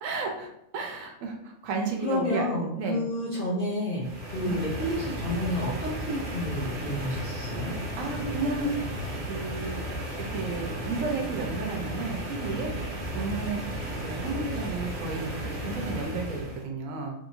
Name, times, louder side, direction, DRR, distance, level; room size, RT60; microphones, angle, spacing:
voice 1, 0.0-2.5 2.8-3.0 4.4-4.6 8.0-8.7 9.3-9.8 10.3-12.7 13.1-13.6 14.0-17.1, right 3 dB, 70° right, 2 dB, 1.0 m, -32 dB
voice 2, 2.0-7.8, left 1 dB, 50° left, -5 dB, 0.7 m, -30 dB
sound 1, 4.0-16.6, equal, 45° right, 0.7 m, -34 dB
3.3 x 2.8 x 2.6 m, 0.82 s
omnidirectional pair, 1.5 m